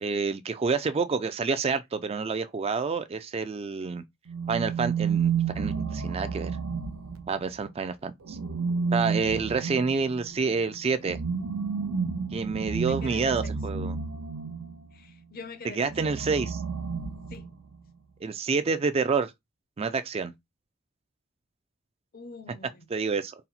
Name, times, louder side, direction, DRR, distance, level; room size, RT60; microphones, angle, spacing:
voice 1, 0.0-4.0 4.5-6.5 7.3-8.4 8.9-11.2 12.3-14.0 15.6-16.6 18.2-19.3 19.8-20.3 22.9-23.3, right 4 dB, 30° right, 0.3 m, -28 dB
sound 1, 4.3-7.6 8.3-14.9 15.8-17.8, right 6 dB, 80° right, 0.6 m, -31 dB
voice 2, 12.8-13.5 14.9-16.2 17.3-17.5 22.1-22.9, left 4 dB, 45° left, 0.6 m, -44 dB
4.2 x 2.1 x 4.0 m
head